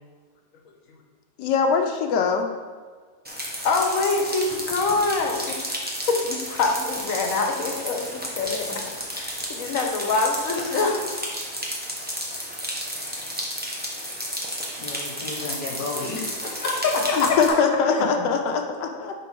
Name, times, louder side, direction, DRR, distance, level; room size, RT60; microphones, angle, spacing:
voice 1, 1.4-2.5 17.2-19.1, left 5 dB, 85° left, 4 dB, 1.2 m, -22 dB
sound 1, 3.2-17.5, equal, 10° right, 0.5 m, -32 dB
voice 2, 3.6-5.8 6.1-8.8 9.1-11.0 17.2-17.3 17.9-18.0, left 3 dB, 60° left, 2 dB, 1.1 m, -25 dB
voice 3, 14.8-16.9 18.0-18.1, left 4 dB, 35° left, -2 dB, 1.2 m, -30 dB
5.9 x 3.8 x 4.4 m, 1.5 s
omnidirectional pair, 1.8 m